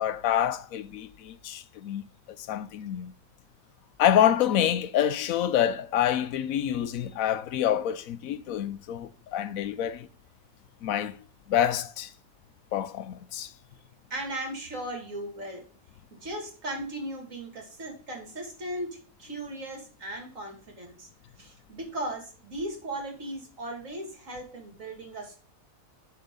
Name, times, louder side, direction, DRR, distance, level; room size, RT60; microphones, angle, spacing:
voice 1, 0.0-2.0 2.5-3.1 4.0-10.1 10.8-11.2 11.5-12.1 12.7-13.5, left 10 dB, 80° left, 1.0 m, -27 dB
voice 2, 14.1-15.6 16.2-21.1 21.4-25.3, right 1 dB, 65° right, 2.7 m, -37 dB
10.5 x 4.4 x 3.7 m
omnidirectional pair, 1.5 m